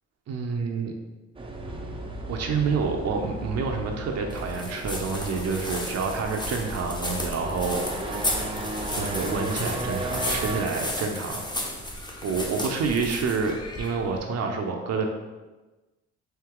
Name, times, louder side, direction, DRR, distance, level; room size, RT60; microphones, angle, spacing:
voice 1, 0.3-0.9 2.3-7.9 8.9-11.5 12.2-15.1, right 4 dB, 60° right, 2 dB, 0.6 m, -28 dB
sound 1, 1.3-10.7, right 1 dB, 20° right, 0.6 m, -34 dB
sound 2, 4.3-14.2, left 1 dB, 15° left, 0.8 m, -34 dB
4.5 x 2.8 x 3.7 m, 1.2 s
cardioid pair, 90°, 30 cm